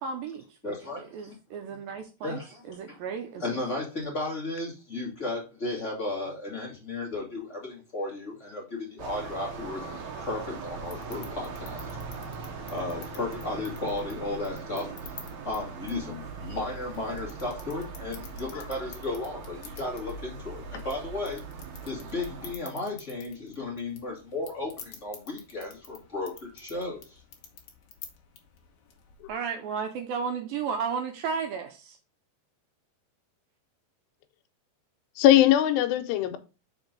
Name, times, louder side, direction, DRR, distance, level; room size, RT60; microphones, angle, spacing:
voice 1, 0.0-0.7 1.1-2.4 2.7-3.4 29.3-32.0, right 6 dB, 75° right, 2.2 m, -33 dB
voice 2, 0.6-1.4 2.2-2.6 2.9-3.0 3.4-11.9 12.7-15.1 15.4-21.4 21.8-27.2, left 2 dB, 35° left, 1.2 m, -34 dB
sound 1, 9.0-22.6, right 4 dB, 60° right, 2.1 m, -40 dB
sound 2, 10.9-29.3, left 7 dB, 65° left, 1.9 m, -51 dB
voice 3, 35.2-36.4, left 12 dB, 85° left, 2.9 m, -21 dB
5.9 x 4.5 x 5.1 m
omnidirectional pair, 4.8 m